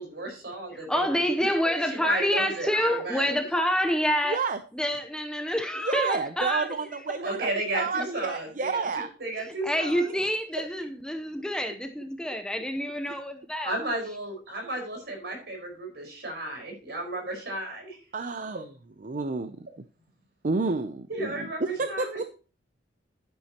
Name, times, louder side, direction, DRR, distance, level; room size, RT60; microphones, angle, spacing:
voice 1, 0.0-1.3 1.9-3.3 7.2-10.2 13.0-13.1 13.6-18.0 21.1-22.2, right 1 dB, 60° right, 4.9 m, -34 dB
voice 2, 0.7-4.4 4.7-6.7 8.0-8.1 9.6-13.7, equal, 5° left, 0.7 m, -27 dB
voice 3, 4.2-4.6 5.8-9.1 18.1-18.7 19.0-19.7 20.4-21.5 21.8-22.3, right 4 dB, 45° right, 0.5 m, -30 dB
11.5 x 10.0 x 2.9 m
head